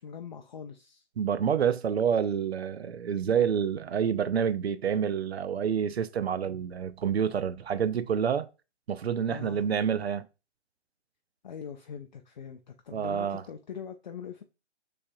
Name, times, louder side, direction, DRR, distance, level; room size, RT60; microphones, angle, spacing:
voice 1, 0.0-1.0 9.3-9.7 11.4-14.4, left 7 dB, 40° left, 0.5 m, -42 dB
voice 2, 1.2-8.5 8.9-10.3 12.9-13.4, right 8 dB, 60° right, 0.5 m, -28 dB
6.2 x 3.3 x 2.3 m
figure-of-eight pair, 140°, 35 cm